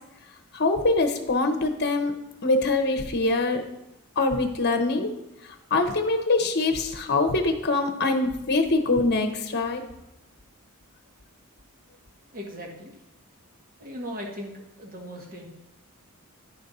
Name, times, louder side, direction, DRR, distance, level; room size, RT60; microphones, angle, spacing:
voice 1, 0.5-2.1 2.4-3.6 4.2-5.1 5.4-9.8, left 3 dB, 50° left, 6 dB, 1.0 m, -24 dB
voice 2, 12.3-13.0 13.8-15.5, equal, 40° right, 0 dB, 1.8 m, -38 dB
10.5 x 4.4 x 5.4 m, 0.89 s
head